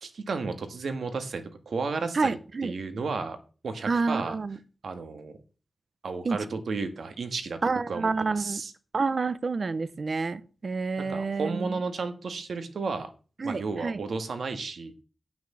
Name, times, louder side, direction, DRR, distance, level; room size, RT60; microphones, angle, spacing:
voice 1, 0.0-3.4 3.6-4.4 4.8-5.4 6.0-8.7 11.0-13.1 13.4-15.0, right 4 dB, 80° right, 8 dB, 1.6 m, -33 dB
voice 2, 2.1-2.7 3.9-4.6 6.2-6.4 7.6-8.6 8.9-11.8 13.4-14.0, right 4 dB, 60° right, 15 dB, 0.7 m, -28 dB
9.0 x 6.2 x 7.3 m, 0.37 s
cardioid pair, 60°, 0 cm